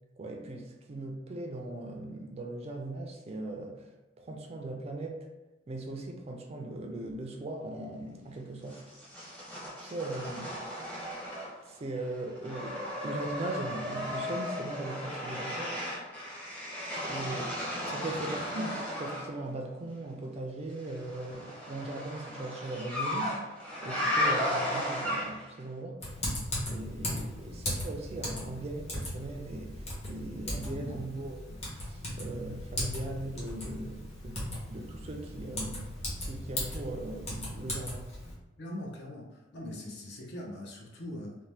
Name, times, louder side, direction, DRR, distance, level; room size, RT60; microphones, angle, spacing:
voice 1, 0.2-3.9 4.2-5.3 5.7-8.8 9.8-10.5 11.7-15.7 17.1-17.6 17.9-23.4 23.8-26.0 26.7-34.4 34.7-35.9 36.2-38.0, right 2 dB, 30° right, 2 dB, 0.3 m, -39 dB
sound 1, 8.7-11.7 12.0-19.3 20.9-25.6, left 1 dB, 5° left, 0.7 m, -35 dB
Typing, 26.0-38.3, left 1 dB, 30° left, 1.0 m, -37 dB
voice 2, 30.6-31.0 38.6-41.4, left 1 dB, 60° left, -1 dB, 0.7 m, -42 dB
2.8 x 2.1 x 3.2 m, 1.0 s
head